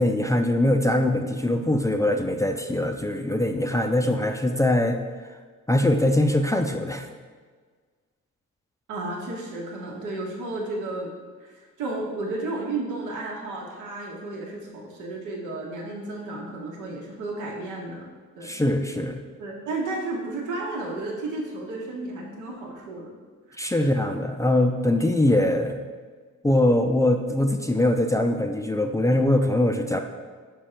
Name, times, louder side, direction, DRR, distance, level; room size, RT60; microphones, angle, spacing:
voice 1, 0.0-5.0 5.7-7.1 18.4-19.2 23.6-25.8 26.4-30.0, left 1 dB, 10° left, 4 dB, 0.4 m, -22 dB
voice 2, 8.9-11.1 11.4-18.1 18.4-18.5 19.4-23.1 23.5-24.0, right 2 dB, 90° right, -1 dB, 1.2 m, -33 dB
5.3 x 5.0 x 4.4 m, 1.6 s
cardioid pair, 90°, 30 cm